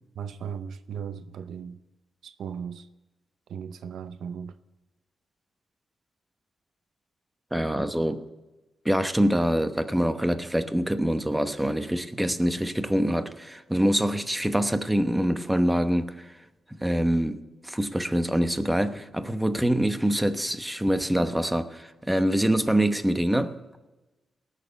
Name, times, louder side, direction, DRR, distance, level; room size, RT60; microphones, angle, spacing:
voice 1, 0.2-1.8 2.2-2.9 3.5-4.5, right 7 dB, 80° right, 0.6 m, -37 dB
voice 2, 7.5-8.2 8.8-16.3 16.8-17.4 17.6-23.6, equal, 5° right, 0.9 m, -25 dB
18.0 x 6.6 x 8.1 m
cardioid pair, 95°, 0 cm